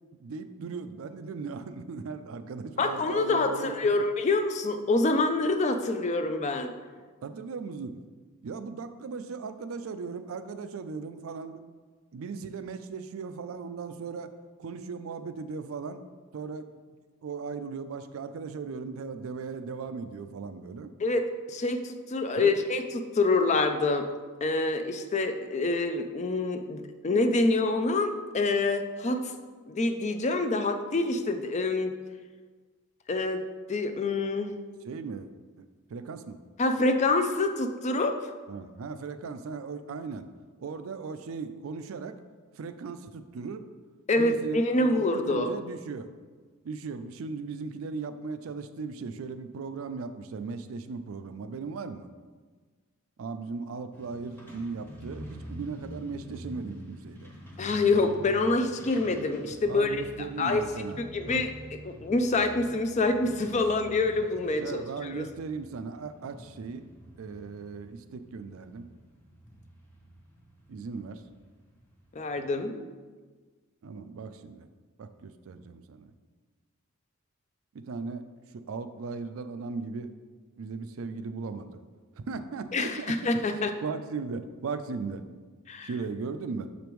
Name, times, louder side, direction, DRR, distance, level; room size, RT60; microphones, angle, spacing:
voice 1, 0.2-4.1 7.2-8.0 8.4-11.6 12.1-14.3 14.6-16.0 16.3-17.0 17.2-20.9 22.4-22.6 34.8-35.3 35.6-36.4 38.5-40.3 40.6-42.2 42.6-43.7 44.2-46.1 46.6-52.1 53.2-57.3 59.7-61.5 64.6-66.9 67.2-68.9 70.7-71.2 73.8-74.7 75.0-76.1 77.7-78.3 78.5-80.2 80.6-81.8 82.2-85.3 85.8-86.7, right 4 dB, 70° right, 10 dB, 0.4 m, -37 dB
voice 2, 2.8-6.7 21.0-24.1 24.4-29.3 29.7-31.9 33.1-33.4 33.7-34.5 36.6-38.3 44.1-45.5 57.6-60.6 61.0-61.5 61.8-65.3 72.1-72.9 82.7-83.7 85.7-85.9, left 2 dB, 35° left, 7 dB, 0.4 m, -26 dB
Truck, 53.9-72.4, equal, 10° left, 0.9 m, -47 dB
6.8 x 5.1 x 3.0 m, 1.4 s
head